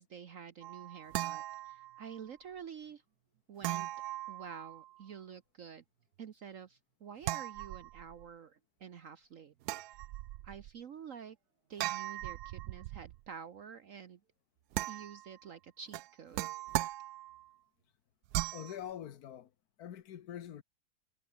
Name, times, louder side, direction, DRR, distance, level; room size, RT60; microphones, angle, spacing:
voice 1, 0.0-3.0 3.5-3.9 4.3-5.8 6.2-9.5 9.8-10.0 10.4-11.4 11.7-14.2 14.9-16.4, right 7 dB, 60° right, 1.3 m, -49 dB
sound 1, 0.6-2.2 3.6-5.0 7.2-8.3 9.6-10.7 11.8-13.2 14.7-15.4 15.9-17.5 18.3-18.8, right 15 dB, 85° right, 1.1 m, -39 dB
voice 2, 18.5-19.5 19.8-20.6, left 10 dB, 70° left, 1.6 m, -44 dB
omnidirectional pair, 1.7 m